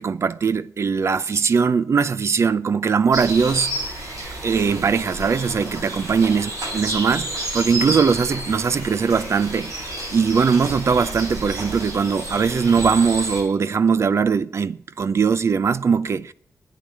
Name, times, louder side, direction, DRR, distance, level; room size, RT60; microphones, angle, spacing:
voice 1, 0.0-3.7 4.4-9.7 10.1-16.3, right 5 dB, 55° right, 0.6 m, -20 dB
sound 1, 3.1-13.4, right 1 dB, 90° right, 7.5 m, -30 dB
10.5 x 9.4 x 9.0 m
wide cardioid pair, 120°, 6 cm